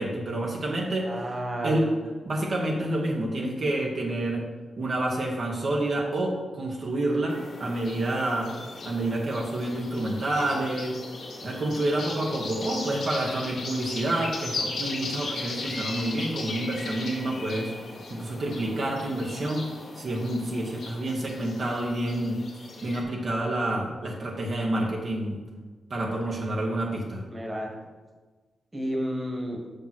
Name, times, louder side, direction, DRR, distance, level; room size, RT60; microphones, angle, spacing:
voice 1, 0.0-1.2 1.6-1.9 2.2-4.4 4.8-8.5 8.8-10.9 11.4-17.7 18.1-19.6 19.9-25.4 25.9-27.2, right 1 dB, 60° right, -2 dB, 1.3 m, -28 dB
voice 2, 1.0-1.9 27.3-27.7 28.7-29.6, equal, 25° right, 0 dB, 1.6 m, -31 dB
sound 1, 7.3-23.0, left 3 dB, 75° left, 1.5 m, -37 dB
5.7 x 5.2 x 6.0 m, 1.3 s
cardioid pair, 70°, 0 cm